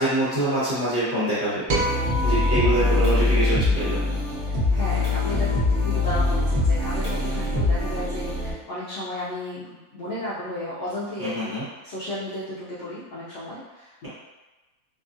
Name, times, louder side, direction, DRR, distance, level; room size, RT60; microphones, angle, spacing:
voice 1, 0.0-1.8 2.2-4.0 11.2-11.6, right 1 dB, 35° right, -12 dB, 1.3 m, -25 dB
sound 1, 1.7-8.5, left 2 dB, 15° right, 0.9 m, -23 dB
sound 2, 1.7-4.2, right 2 dB, 85° right, 1.2 m, -31 dB
voice 2, 2.5-2.9 4.4-14.1, left 1 dB, 65° left, -9 dB, 0.7 m, -34 dB
2.9 x 2.3 x 2.5 m, 1.1 s
omnidirectional pair, 1.6 m